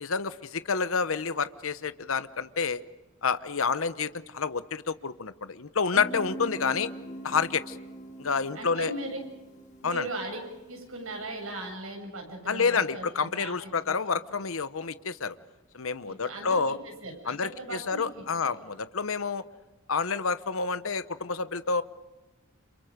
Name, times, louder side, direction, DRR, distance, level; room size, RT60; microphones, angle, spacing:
voice 1, 0.0-2.8 3.2-6.9 7.2-7.8 8.2-8.9 9.8-10.0 12.5-15.4 15.7-16.8 17.3-19.4 19.9-21.8, left 5 dB, 85° left, 13 dB, 1.0 m, -29 dB
Guitar, 5.9-11.5, right 1 dB, 35° left, 3.6 m, -43 dB
voice 2, 8.5-9.2 9.8-10.4 10.7-14.0 16.0-18.1 18.4-18.5, right 2 dB, 90° right, 3 dB, 7.5 m, -38 dB
30.0 x 28.0 x 5.2 m, 1.1 s
head